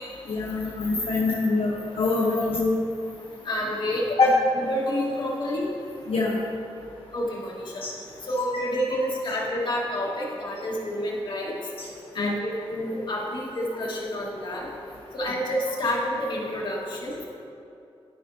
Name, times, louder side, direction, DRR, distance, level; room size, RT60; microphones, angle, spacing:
voice 1, 0.3-2.8 4.2-4.3 6.1-6.4 12.2-12.3, left 3 dB, 70° left, -4 dB, 0.8 m, -24 dB
voice 2, 3.4-5.7 7.1-7.8 8.3-11.6 12.1-14.7 15.1-17.2, left 1 dB, 50° left, -4 dB, 1.5 m, -29 dB
13.0 x 5.2 x 2.7 m, 2.7 s
wide cardioid pair, 150°, 10 cm